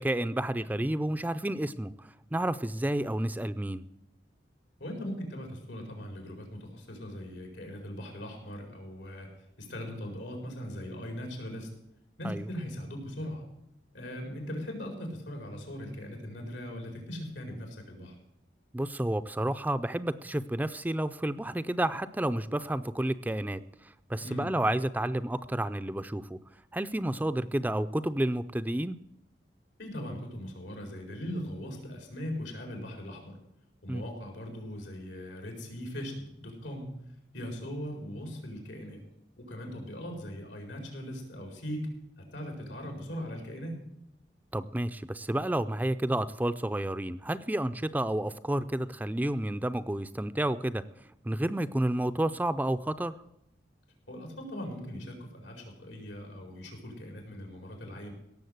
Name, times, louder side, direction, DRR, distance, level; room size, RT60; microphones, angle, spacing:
voice 1, 0.0-3.8 12.2-12.4 18.7-26.4 26.7-29.0 33.9-34.0 44.5-50.8 51.2-53.2, right 1 dB, 10° right, 12 dB, 0.4 m, -30 dB
voice 2, 4.8-9.3 9.6-11.7 12.2-13.4 13.9-18.2 24.2-24.6 29.8-33.3 33.8-36.9 37.3-39.0 39.4-41.9 42.3-43.8 54.1-58.1, equal, 90° left, 2 dB, 4.8 m, -39 dB
17.5 x 7.1 x 7.9 m, 0.83 s
head